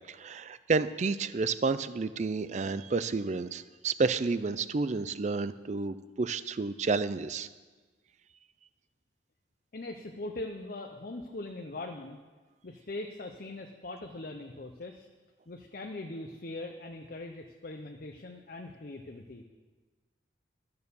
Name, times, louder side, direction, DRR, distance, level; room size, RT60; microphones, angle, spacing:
voice 1, 0.1-7.5, right 4 dB, 40° right, 14 dB, 0.4 m, -30 dB
voice 2, 9.7-12.2 12.6-15.1 15.5-19.4, left 2 dB, 50° left, 3 dB, 0.7 m, -41 dB
12.5 x 6.8 x 6.9 m, 1.3 s
head